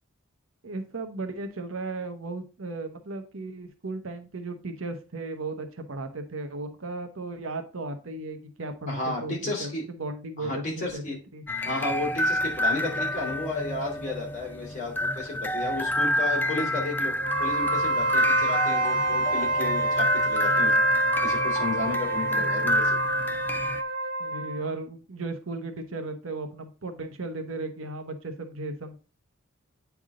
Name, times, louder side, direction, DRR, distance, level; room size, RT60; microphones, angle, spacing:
voice 1, 0.6-11.4 24.2-29.0, right 2 dB, 75° right, 6 dB, 1.0 m, -36 dB
voice 2, 8.9-9.8 10.4-11.2 11.6-17.1 17.4-20.8 21.2-23.0, left 2 dB, 40° left, -3 dB, 3.2 m, -33 dB
sound 1, 11.5-23.8, equal, 10° left, 0.3 m, -28 dB
Wind instrument woodwind instrument, 17.2-24.7, right 1 dB, 50° right, 1.5 m, -27 dB
8.9 x 3.5 x 3.7 m, 0.35 s
head